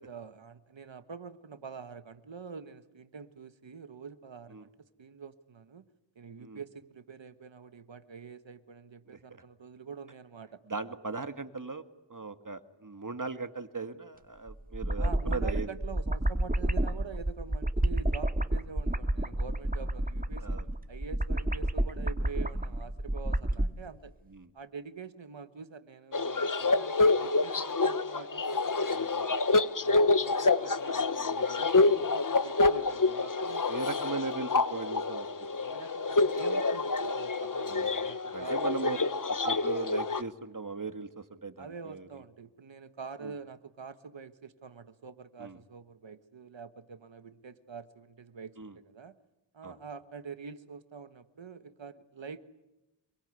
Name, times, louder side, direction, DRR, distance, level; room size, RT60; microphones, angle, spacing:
voice 1, 0.0-5.9 6.1-10.6 15.0-20.6 20.9-24.1 24.5-29.4 29.8-33.6 35.6-39.0 41.6-49.2 49.5-52.4, right 5 dB, 85° right, 11 dB, 1.4 m, -46 dB
voice 2, 9.1-9.4 10.7-11.8 12.1-15.7 20.4-20.7 24.3-24.5 31.7-32.0 33.7-35.3 37.7-37.9 38.3-39.0 39.4-42.2 43.2-43.3 45.4-45.6 48.6-48.7 49.6-49.8, right 4 dB, 45° right, 9 dB, 2.0 m, -38 dB
sound 1, 14.5-23.7, right 1 dB, 20° right, 2.2 m, -30 dB
sound 2, 26.1-40.2, left 3 dB, 45° left, 1.2 m, -27 dB
26.0 x 23.5 x 9.7 m, 0.94 s
wide cardioid pair, 60°, 44 cm